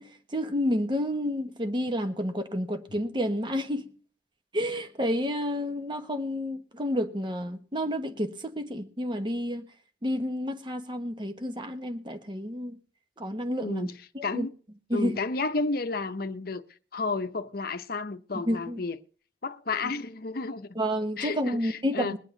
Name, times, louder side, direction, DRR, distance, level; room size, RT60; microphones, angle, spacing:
voice 1, 0.0-3.9 4.5-9.6 10.0-12.8 13.2-13.9 14.1-14.5 14.9-15.2 18.3-18.8 20.7-22.2, equal, 25° right, 1.2 m, -30 dB
voice 2, 13.6-14.0 14.2-14.5 14.9-16.6 16.9-19.0 19.4-20.8 21.2-22.2, left 3 dB, 50° left, 0.9 m, -31 dB
22.0 x 8.2 x 3.9 m
head